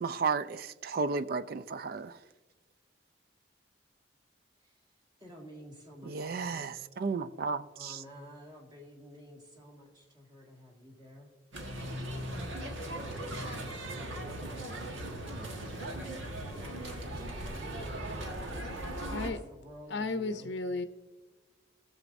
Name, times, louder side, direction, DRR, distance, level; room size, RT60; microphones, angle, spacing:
voice 1, 0.0-2.2 6.1-8.0, right 4 dB, 50° right, 0.3 m, -33 dB
voice 2, 5.2-6.8 7.7-11.3 12.4-15.6 16.3-17.9 18.9-20.5, left 1 dB, 20° right, 1.8 m, -52 dB
sound 1, 11.5-19.3, right 1 dB, 80° right, 1.5 m, -38 dB
voice 3, 19.9-20.9, left 3 dB, 65° left, 0.6 m, -33 dB
16.5 x 7.2 x 2.6 m
head